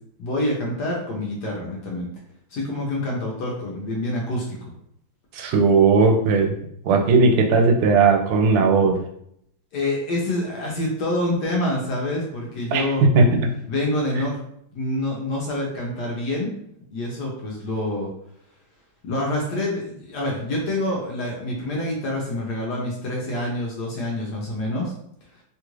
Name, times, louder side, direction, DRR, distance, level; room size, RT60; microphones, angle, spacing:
voice 1, 0.2-2.1 2.5-4.6 9.7-13.0 13.7-14.4 14.7-16.5 16.9-18.1 19.0-24.9, left 1 dB, 65° left, -2 dB, 1.1 m, -26 dB
voice 2, 5.3-6.6 6.8-9.0 12.7-12.8 13.1-13.4, right 4 dB, 85° right, 4 dB, 1.5 m, -17 dB
3.5 x 2.4 x 3.0 m, 0.71 s
omnidirectional pair, 2.3 m